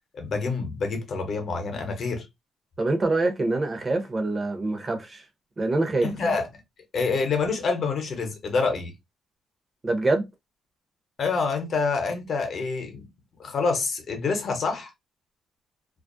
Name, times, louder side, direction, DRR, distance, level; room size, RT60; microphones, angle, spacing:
voice 1, 0.1-2.3 6.0-6.5 6.9-8.9 11.2-13.1 13.4-14.9, left 4 dB, 55° left, 0.8 m, -27 dB
voice 2, 2.8-5.3 5.6-6.3 9.8-10.3, right 2 dB, 30° right, 0.7 m, -25 dB
2.4 x 2.0 x 2.5 m
cardioid pair, 90°, 0 cm